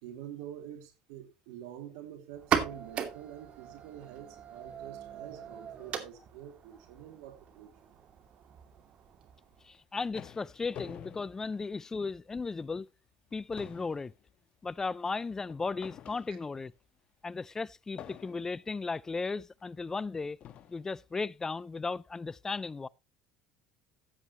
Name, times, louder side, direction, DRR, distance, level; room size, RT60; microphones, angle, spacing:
voice 1, 0.0-8.0, right 10 dB, 80° right, 2.6 m, -47 dB
sound 1, 2.3-9.8, right 8 dB, 50° right, 2.5 m, -38 dB
sound 2, 9.6-12.3 12.7-12.9 13.2-16.7 18.0-18.7 19.6-19.7 20.4-20.9, left 9 dB, 50° left, 1.4 m, -49 dB
voice 2, 9.6-12.9 13.3-14.1 14.6-16.7 17.2-20.4 20.7-22.9, left 4 dB, 20° left, 0.4 m, -36 dB
15.0 x 9.2 x 3.0 m
supercardioid pair, 90°, 2 cm